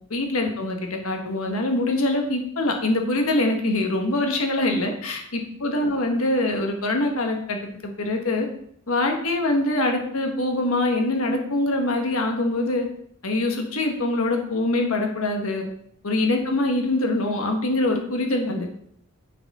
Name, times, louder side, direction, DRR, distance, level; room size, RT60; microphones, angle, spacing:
voice 1, 0.1-8.5 8.9-12.9 13.2-15.6 16.0-18.7, left 2 dB, 85° left, 3 dB, 1.4 m, -24 dB
9.5 x 4.9 x 4.2 m, 0.69 s
head